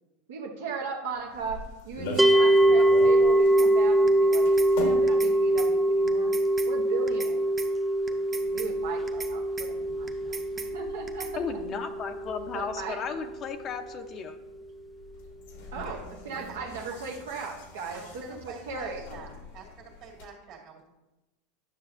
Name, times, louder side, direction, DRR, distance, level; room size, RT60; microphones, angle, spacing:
voice 1, 0.3-4.5 4.8-6.4 6.6-7.6 8.1-11.6 12.5-13.0 15.7-19.1, right 5 dB, 80° right, 1 dB, 0.9 m, -37 dB
sound 1, 1.2-20.3, left 2 dB, 75° left, 1.3 m, -44 dB
sound 2, 2.2-13.3, right 1 dB, 5° right, 0.3 m, -23 dB
sound 3, 3.6-3.7 4.1-4.7 5.1-5.3 5.6-5.7 6.1-6.7 7.1-7.3 7.6-7.7 8.1-8.7 9.1-9.3 9.6-9.7 10.1-10.7 11.1-11.3, right 5 dB, 25° right, 0.7 m, -39 dB
voice 2, 11.3-14.4, left 6 dB, 40° left, 7 dB, 0.6 m, -35 dB
voice 3, 16.3-16.6 17.9-20.9, right 5 dB, 55° right, 0 dB, 1.9 m, -47 dB
9.8 x 6.0 x 2.5 m, 1.0 s
hypercardioid pair, 95°, 0 cm